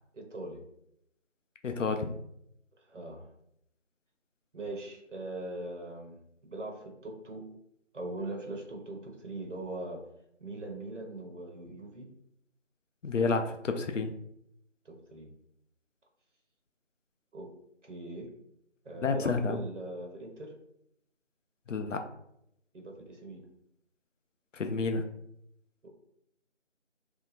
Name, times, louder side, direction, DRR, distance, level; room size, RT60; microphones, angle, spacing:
voice 1, 0.1-0.6 2.8-3.3 4.5-7.4 7.9-10.0 10.4-12.1 14.8-15.3 17.3-17.5 17.8-18.3 18.8-20.5 22.7-23.4 25.8-25.9, right 2 dB, 70° right, 2 dB, 0.8 m, -41 dB
voice 2, 1.6-2.2 13.0-14.1 19.0-19.6 21.7-22.0 24.5-25.0, left 4 dB, 80° left, 6 dB, 0.5 m, -30 dB
2.8 x 2.2 x 3.9 m, 0.77 s
figure-of-eight pair, 170°, 37 cm